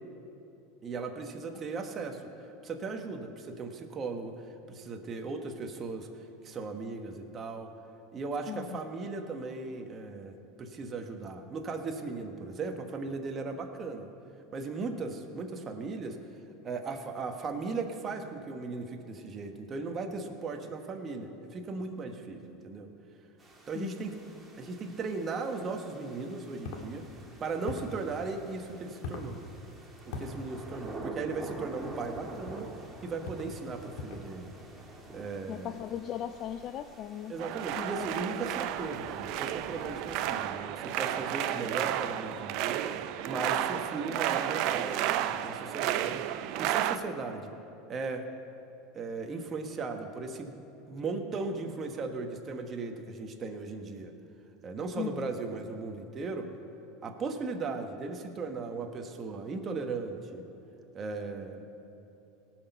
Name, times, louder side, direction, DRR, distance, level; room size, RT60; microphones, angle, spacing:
voice 1, 0.8-2.3 2.6-4.4 4.7-6.1 6.4-7.7 8.1-14.1 14.5-16.2 16.6-22.9 23.7-24.2 24.6-27.1 27.4-29.4 30.1-32.7 33.0-34.5 35.1-35.8 37.3-42.9 43.3-46.2 46.6-47.5 47.9-48.3 48.9-50.5 50.9-54.1 54.6-56.5 57.0-60.4 60.9-61.7, right 4 dB, 35° right, 4 dB, 1.3 m, -37 dB
voice 2, 8.5-8.8 23.7-24.1 35.5-37.3 37.8-38.5 55.0-55.3, left 10 dB, 50° left, 10 dB, 0.4 m, -38 dB
sound 1, 23.4-40.3, right 2 dB, 20° right, 2.3 m, -47 dB
sound 2, 26.6-26.9 27.6-28.0 29.0-29.3 30.1-30.3 31.6-31.8 32.4-32.7 33.2-33.5 34.0-34.3, left 4 dB, 65° left, 1.6 m, -40 dB
sound 3, 37.4-47.0, right 12 dB, 60° right, 0.5 m, -32 dB
18.5 x 6.2 x 5.6 m, 2.9 s
hypercardioid pair, 95°, 0 cm